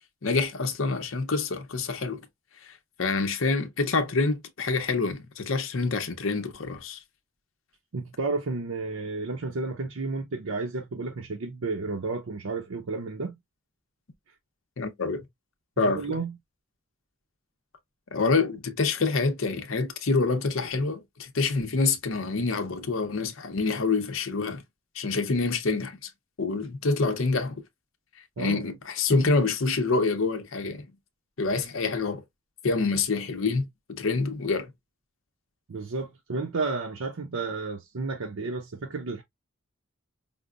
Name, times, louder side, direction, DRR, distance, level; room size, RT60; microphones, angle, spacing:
voice 1, 0.2-2.2 2.6-2.7 3.0-7.0 14.8-15.2 15.8-16.2 18.1-24.6 25.0-26.1 26.4-27.6 28.4-30.9 31.4-32.2 32.6-34.7, left 3 dB, 70° left, 0.7 m, -26 dB
voice 2, 7.9-13.4 15.8-16.3 28.4-28.7 29.1-29.3 35.7-39.2, right 3 dB, 80° right, 0.6 m, -32 dB
5.2 x 2.0 x 2.3 m
head